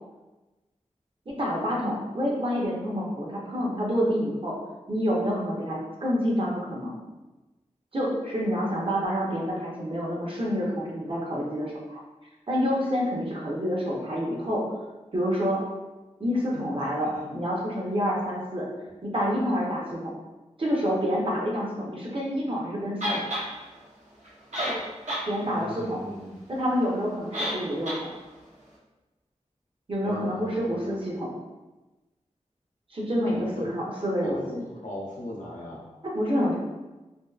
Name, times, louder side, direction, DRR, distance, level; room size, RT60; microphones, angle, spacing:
voice 1, 1.3-4.5 4.9-6.9 7.9-12.0 12.5-14.8 15.1-15.6 16.2-18.7 19.0-20.2 20.6-23.2 25.2-26.0 26.5-28.1 29.9-31.3 32.9-34.6 36.0-36.6, equal, 45° right, -4 dB, 0.7 m, -28 dB
voice 2, 16.5-17.2 25.5-26.4 30.0-31.1 33.2-33.7 34.2-35.8, left 1 dB, 90° left, -4 dB, 0.6 m, -39 dB
sound 1, 23.0-23.5 24.3-24.4 24.5-25.3 25.6-25.7 27.3-27.6 27.9-28.0, equal, 75° right, 0.8 m, -29 dB
2.7 x 2.2 x 2.3 m, 1.1 s
wide cardioid pair, 50°, 13 cm